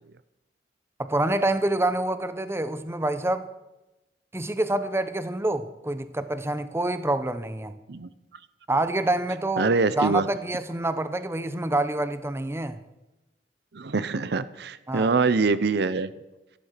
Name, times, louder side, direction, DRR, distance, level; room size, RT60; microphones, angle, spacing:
voice 1, 1.0-3.5 4.3-7.7 8.7-9.7 10.0-12.8 14.9-15.1, right 1 dB, 15° right, 0.7 m, -27 dB
voice 2, 9.6-10.2 13.7-16.1, right 4 dB, 65° right, 0.6 m, -24 dB
14.0 x 11.5 x 6.6 m
head